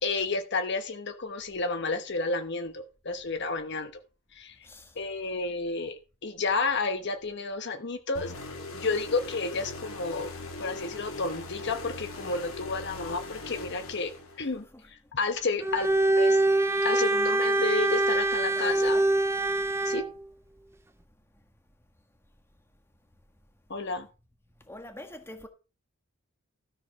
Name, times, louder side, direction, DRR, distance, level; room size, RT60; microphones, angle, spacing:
voice 1, 0.0-3.9 4.3-4.6 5.0-8.3 8.7-10.3 10.6-14.1 14.4-16.4 16.8-19.0 19.8-20.0 23.7-24.1, left 3 dB, 55° left, 1.0 m, -31 dB
voice 2, 4.6-5.0 14.4-14.9 18.5-19.1 24.7-25.5, left 1 dB, 10° left, 1.5 m, -45 dB
sound 1, 8.2-14.6, left 3 dB, 90° left, 2.7 m, -40 dB
Bowed string instrument, 15.6-20.1, right 2 dB, 10° right, 0.5 m, -24 dB
13.0 x 5.1 x 6.0 m
head